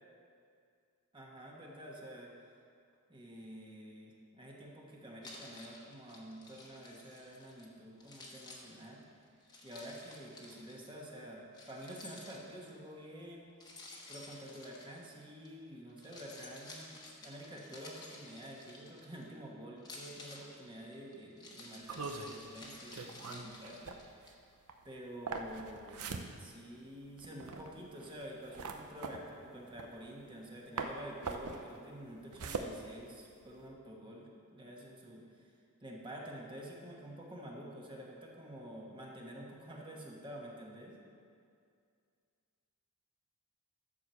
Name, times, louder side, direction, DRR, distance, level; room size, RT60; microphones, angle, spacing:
voice 1, 1.1-2.3 3.1-9.0 9.6-13.5 14.1-24.3 24.8-26.0 26.4-35.5 35.8-41.0, equal, 20° right, -2 dB, 1.3 m, -49 dB
Keys jangling, 5.2-7.7 8.0-10.8 11.5-12.8 13.6-15.5 15.9-19.3 19.8-24.3, left 2 dB, 20° left, 1.2 m, -53 dB
sound 1, 21.8-30.5 30.8-33.7, right 4 dB, 85° right, 0.7 m, -43 dB
12.0 x 4.8 x 6.8 m, 2.3 s
head